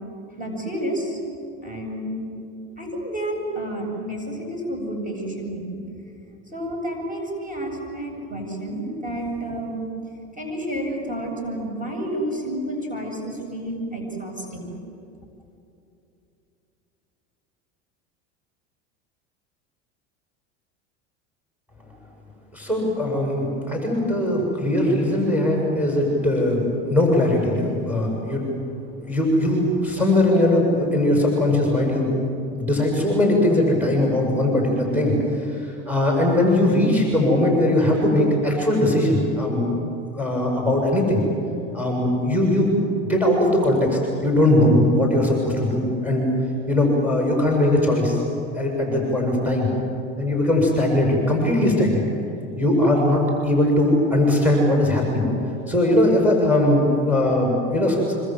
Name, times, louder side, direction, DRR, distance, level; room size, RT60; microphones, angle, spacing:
voice 1, 0.4-1.2 1.6-2.3 2.8-5.8 6.5-9.9 10.3-14.7, right 1 dB, 20° right, 1 dB, 7.8 m, -30 dB
voice 2, 22.5-26.6 26.9-28.5 29.0-32.1 32.5-39.7 40.1-41.2 41.7-42.7 43.1-46.3 46.7-48.2 48.5-49.7 50.2-52.0 52.6-55.3 55.7-58.1, left 1 dB, 5° right, -1 dB, 7.1 m, -20 dB
26.5 x 26.0 x 7.8 m, 2.7 s
hypercardioid pair, 95°, 36 cm